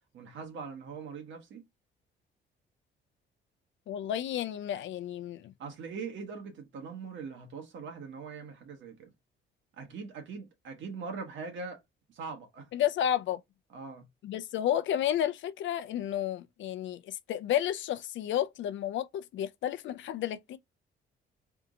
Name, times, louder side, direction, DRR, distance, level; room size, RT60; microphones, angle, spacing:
voice 1, 0.1-1.6 5.6-9.1 9.8-11.8 12.1-12.7 13.7-14.1, right 5 dB, 70° right, 1.5 m, -41 dB
voice 2, 3.9-5.5 12.7-13.4 14.2-20.6, left 11 dB, 75° left, 0.6 m, -31 dB
3.6 x 2.8 x 3.7 m
cardioid pair, 90°, 20 cm